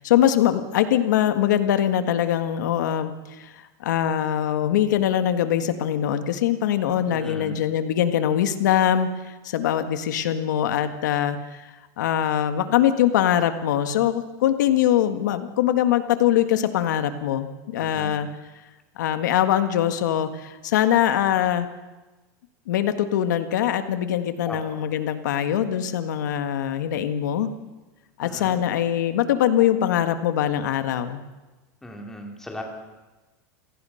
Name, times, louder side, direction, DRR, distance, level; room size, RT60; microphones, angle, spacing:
voice 1, 0.0-18.3 19.0-21.7 22.7-27.5 28.2-31.2, left 10 dB, 85° left, 9 dB, 1.8 m, -22 dB
voice 2, 7.1-7.6 17.8-18.2 24.4-24.8 28.2-28.6 31.8-32.6, equal, 5° left, 1 dB, 3.0 m, -37 dB
27.0 x 18.0 x 5.8 m, 1.2 s
supercardioid pair, 170°, 10 cm